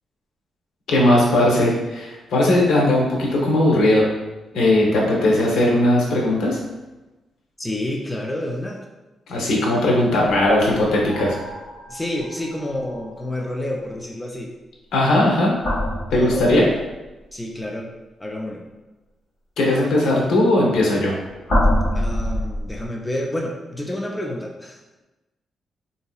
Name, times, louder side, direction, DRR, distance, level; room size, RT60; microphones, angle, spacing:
voice 1, 0.9-4.1 4.5-6.6 9.3-11.4 14.9-15.5 16.1-16.6 19.6-21.1, left 1 dB, 85° left, -2 dB, 0.8 m, -18 dB
voice 2, 7.6-8.8 11.9-14.5 16.1-16.7 17.3-17.9 18.2-18.6 21.9-24.8, left 1 dB, 10° left, -1 dB, 0.4 m, -29 dB
sound 1, 10.2-13.7 15.4-17.1 20.5-22.9, left 1 dB, 40° left, 1.2 m, -26 dB
3.9 x 2.7 x 2.3 m, 1.1 s
cardioid pair, 125°, 0 cm